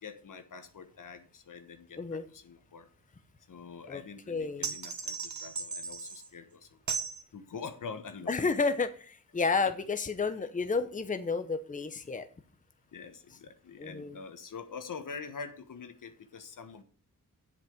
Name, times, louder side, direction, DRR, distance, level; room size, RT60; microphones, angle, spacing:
voice 1, 0.0-2.9 3.5-6.7 7.3-8.5 9.6-9.7 12.9-16.8, left 5 dB, 65° left, 9 dB, 1.3 m, -45 dB
voice 2, 4.3-4.7 8.3-12.3 13.8-14.2, left 4 dB, 25° left, 9 dB, 0.9 m, -31 dB
sound 1, 4.6-6.3 6.9-7.2, right 5 dB, 55° right, 1.3 m, -36 dB
7.6 x 6.0 x 6.9 m, 0.42 s
cardioid pair, 75°, 34 cm